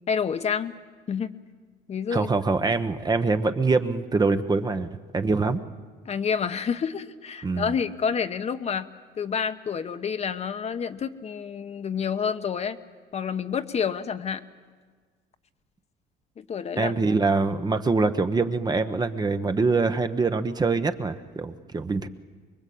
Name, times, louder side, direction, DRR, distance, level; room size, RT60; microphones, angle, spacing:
voice 1, 0.1-0.7 1.1-1.3 1.9-2.3 6.0-8.9 9.2-12.8 13.1-14.4 16.4-16.9, left 6 dB, 40° left, 9 dB, 1.1 m, -28 dB
voice 2, 2.1-5.6 7.4-7.7 16.8-22.1, right 3 dB, 25° right, 9 dB, 1.1 m, -24 dB
24.5 x 22.5 x 8.6 m, 1.5 s
cardioid pair, 110°, 17 cm